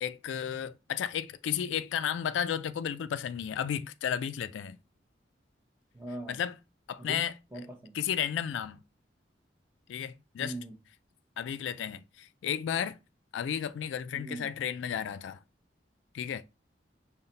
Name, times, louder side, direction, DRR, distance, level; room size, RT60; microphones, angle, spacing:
voice 1, 0.0-4.8 6.3-6.6 6.9-7.4 7.9-8.8 9.9-10.6 11.4-13.0 13.3-15.4 16.1-16.4, left 9 dB, 90° left, 0.3 m, -33 dB
voice 2, 5.9-6.4 7.0-7.2 7.5-7.9 10.4-10.7 14.1-14.5, right 1 dB, 10° right, 0.8 m, -40 dB
5.6 x 2.1 x 3.9 m
head